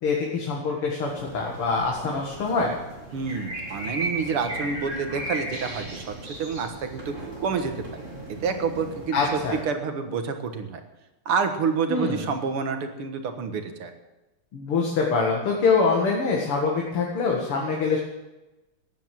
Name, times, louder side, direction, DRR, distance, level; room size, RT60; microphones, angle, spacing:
voice 1, 0.0-2.7 9.1-9.5 11.9-12.2 14.5-18.0, left 4 dB, 85° left, -1 dB, 2.9 m, -24 dB
sound 1, 1.1-9.6, right 2 dB, 35° right, 3.5 m, -36 dB
voice 2, 3.1-7.1 7.4-7.7 8.4-10.8 11.3-13.9, right 5 dB, 90° right, 6 dB, 2.4 m, -28 dB
14.5 x 9.9 x 7.7 m, 1.0 s
omnidirectional pair, 2.4 m